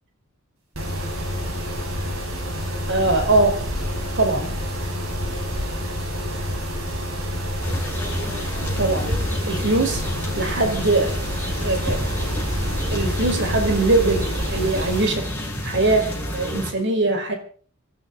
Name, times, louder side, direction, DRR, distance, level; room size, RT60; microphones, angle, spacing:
Mechanisms, 0.8-15.1, equal, 90° right, 6.9 m, -28 dB
voice 1, 2.9-3.7 4.2-4.5 8.8-9.1 9.5-10.0 10.4-11.1 11.6-12.0 12.9-15.3 15.6-17.3, right 2 dB, 60° right, 5 dB, 4.6 m, -21 dB
sound 1, 7.6-16.7, equal, 10° left, 6.9 m, -29 dB
26.0 x 13.0 x 4.0 m, 0.43 s
head